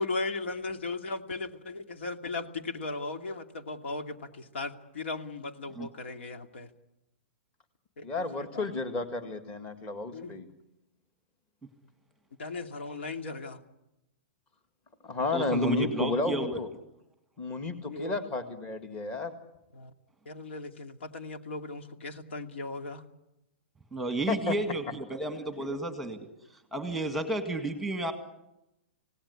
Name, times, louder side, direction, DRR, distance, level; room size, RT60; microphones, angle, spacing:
voice 1, 0.0-6.7 8.0-8.7 10.1-10.4 12.4-13.6 17.9-18.2 19.7-19.9 20.3-23.0 25.6-25.8, left 3 dB, 90° left, 6 dB, 2.6 m, -37 dB
voice 2, 8.0-10.5 15.0-16.7 17.4-19.3 24.3-24.5, left 3 dB, 20° left, 8 dB, 1.9 m, -31 dB
voice 3, 15.3-16.6 23.9-26.2 26.7-28.1, right 2 dB, ahead, 7 dB, 1.9 m, -32 dB
27.0 x 18.0 x 9.8 m, 0.91 s
hypercardioid pair, 170°, 6 cm